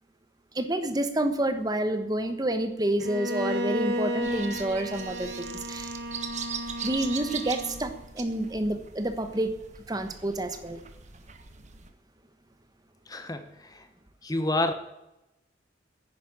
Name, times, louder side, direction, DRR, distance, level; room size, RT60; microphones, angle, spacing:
voice 1, 0.5-5.9 6.8-9.5 9.9-10.8, right 1 dB, 20° right, 9 dB, 1.2 m, -29 dB
Bowed string instrument, 3.0-8.0, equal, 55° right, 1.8 m, -33 dB
sound 1, 4.2-11.9, right 6 dB, 35° right, 1.4 m, -41 dB
voice 2, 13.1-13.8 14.2-14.7, left 2 dB, 20° left, 9 dB, 1.0 m, -29 dB
10.5 x 10.5 x 8.7 m, 0.93 s
head